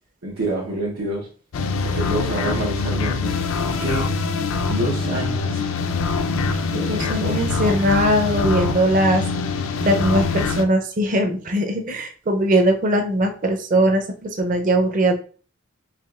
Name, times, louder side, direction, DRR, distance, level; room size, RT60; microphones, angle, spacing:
voice 1, 0.2-1.3 1.8-3.3 3.8-4.1 4.7-5.6 6.7-7.4, right 1 dB, 90° right, 1.0 m, -27 dB
sound 1, 1.5-10.6, left 4 dB, 75° left, 0.4 m, -24 dB
voice 2, 6.9-9.2 9.8-15.1, right 1 dB, 40° right, 0.6 m, -20 dB
4.8 x 3.0 x 2.4 m
head